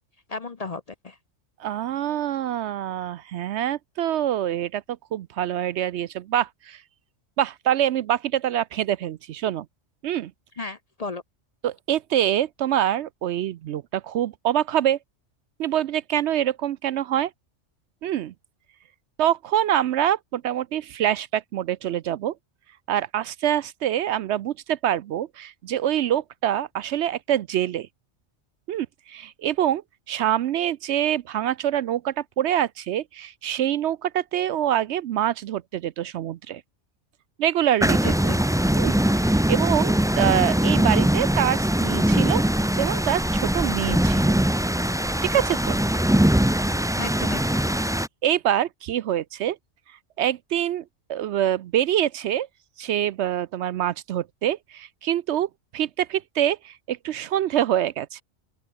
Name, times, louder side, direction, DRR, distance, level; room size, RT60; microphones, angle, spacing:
voice 1, 0.3-1.2 10.6-11.2 38.0-38.4 47.0-47.6, left 3 dB, 35° left, 0.7 m, -34 dB
voice 2, 1.6-4.8 5.1-6.8 7.4-9.7 10.0-10.3 11.6-15.0 15.6-17.3 18.0-18.3 19.2-22.3 22.9-27.9 28.7-29.8 30.1-36.6 37.4-38.3 38.8-42.4 42.8-44.4 45.2-45.8 46.8-47.0 48.2-49.6 50.2-50.8 51.1-52.5 52.8-58.2, right 11 dB, 70° right, 0.8 m, -25 dB
sound 1, 37.8-48.1, right 1 dB, 5° right, 0.5 m, -21 dB
open air
omnidirectional pair, 1.3 m